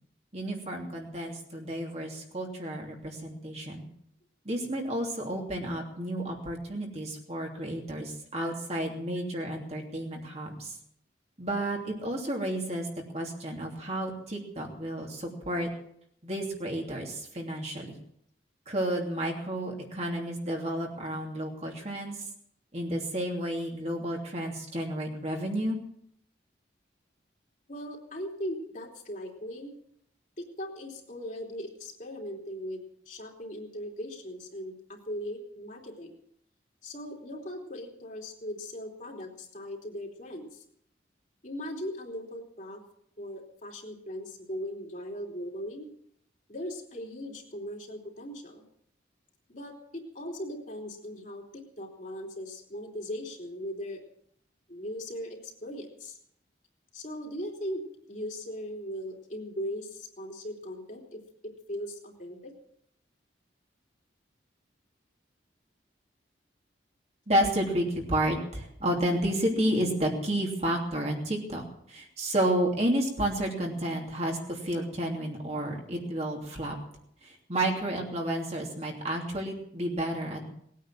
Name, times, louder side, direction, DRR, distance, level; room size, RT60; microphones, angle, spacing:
voice 1, 0.3-3.9 4.4-10.7 11.4-12.9 13.1-15.7 16.2-18.0 18.7-22.2 22.7-25.8 67.3-76.7 77.2-80.5, right 1 dB, 35° right, 0 dB, 2.9 m, -31 dB
voice 2, 27.7-29.8 30.4-36.1 36.8-40.6 41.4-42.8 43.2-45.9 46.5-48.6 49.5-54.0 54.7-56.2 56.9-62.5, equal, 45° left, 0 dB, 3.2 m, -39 dB
19.5 x 9.4 x 7.6 m, 0.70 s
head